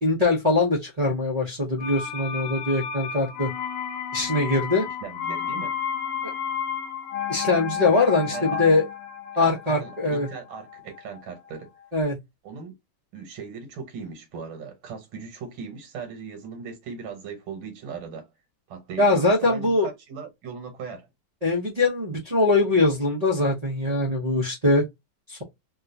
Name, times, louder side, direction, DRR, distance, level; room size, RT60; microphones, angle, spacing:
voice 1, 0.0-3.5 4.1-4.8 7.3-8.8 9.4-10.3 11.9-12.2 19.0-19.9 21.4-24.8 25.3-25.4, left 2 dB, 50° right, 0.4 m, -22 dB
sound 1, 1.8-11.5 11.8-11.9, left 8 dB, 70° left, 1.2 m, -32 dB
voice 2, 5.0-5.8 8.1-8.7 9.4-11.7 12.4-12.7 13.1-18.3 18.7-21.1, right 5 dB, 75° right, 1.8 m, -38 dB
3.6 x 2.4 x 2.6 m
omnidirectional pair, 2.2 m